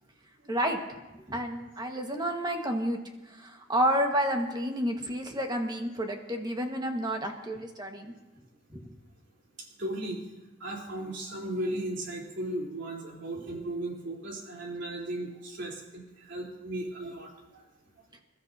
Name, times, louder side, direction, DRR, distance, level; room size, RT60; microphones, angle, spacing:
voice 1, 0.5-0.8 1.3-3.0 3.3-8.1 8.7-8.9, equal, 20° right, 3 dB, 1.6 m, -30 dB
voice 2, 9.8-10.2 10.6-17.3, right 1 dB, 65° right, -2 dB, 3.8 m, -36 dB
28.0 x 13.0 x 2.8 m, 1.1 s
head